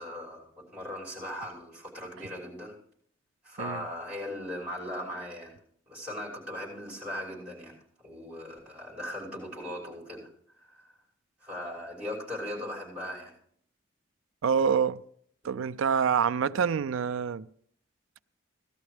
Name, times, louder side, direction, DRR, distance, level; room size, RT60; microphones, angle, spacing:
voice 1, 0.0-2.7 3.4-5.5 5.9-7.8 8.0-10.3 10.6-10.9 11.4-13.3, left 1 dB, 5° right, 6.0 m, -39 dB
voice 2, 14.4-15.0 15.4-17.5, right 6 dB, 75° right, 0.4 m, -26 dB
18.0 x 12.5 x 3.3 m
head